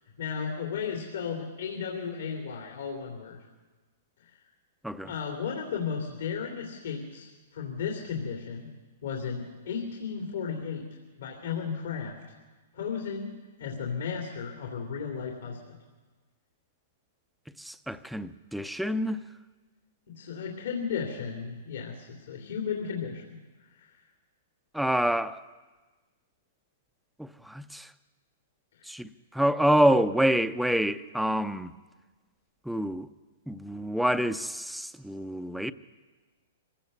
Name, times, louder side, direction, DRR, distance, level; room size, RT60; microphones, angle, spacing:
voice 1, 0.2-3.4 4.2-4.4 5.0-8.7 9.0-10.9 11.2-12.2 12.7-13.3 13.6-15.8 20.1-23.4 23.7-23.9, left 6 dB, 75° left, 3.0 m, -34 dB
voice 2, 17.6-19.2 24.7-25.4 27.2-27.9 28.8-31.7 32.6-33.1 33.5-35.7, equal, ahead, 0.6 m, -27 dB
24.0 x 17.0 x 6.7 m
hypercardioid pair, 140°, 0 cm